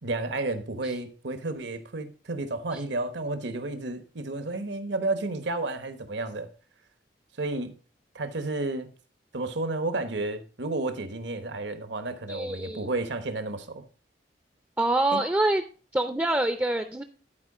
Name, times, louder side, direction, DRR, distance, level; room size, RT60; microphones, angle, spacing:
voice 1, 0.0-6.5 7.4-7.7 8.1-8.9 9.3-13.8 15.1-15.2, right 2 dB, 75° right, 1.1 m, -31 dB
voice 2, 12.3-12.8 14.8-15.6 15.9-17.0, right 2 dB, 10° right, 0.4 m, -26 dB
11.0 x 4.7 x 4.9 m
head